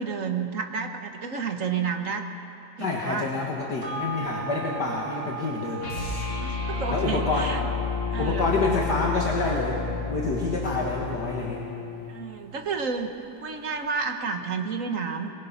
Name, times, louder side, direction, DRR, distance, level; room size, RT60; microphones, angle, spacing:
voice 1, 0.0-2.3 2.8-3.3 6.3-7.6 8.1-8.6 12.1-13.1 13.4-15.3, right 5 dB, 50° right, 5 dB, 1.5 m, -30 dB
voice 2, 2.8-5.9 6.9-7.5 8.2-9.8 10.1-11.6, left 3 dB, 65° left, -2 dB, 2.3 m, -27 dB
sound 1, 3.8-12.6 12.9-13.0, right 5 dB, 90° right, 4.3 m, -40 dB
sound 2, 5.8-12.2, left 5 dB, 85° left, 3.0 m, -31 dB
23.0 x 21.0 x 5.8 m, 2.6 s
omnidirectional pair, 1.9 m